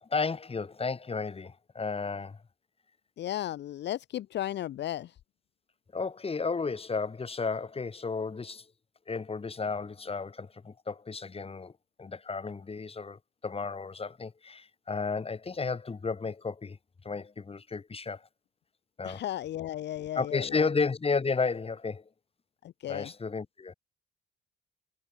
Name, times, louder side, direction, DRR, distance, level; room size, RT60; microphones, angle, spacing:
voice 1, 0.0-2.4 5.9-8.7 9.1-11.7 12.0-16.8 17.0-18.3 19.0-19.2 20.1-22.0 22.9-23.7, left 4 dB, 30° left, 2.9 m, -33 dB
voice 2, 3.2-5.2 19.0-20.7 22.6-23.1, left 12 dB, 65° left, 0.7 m, -35 dB
cardioid pair, 90°, 20 cm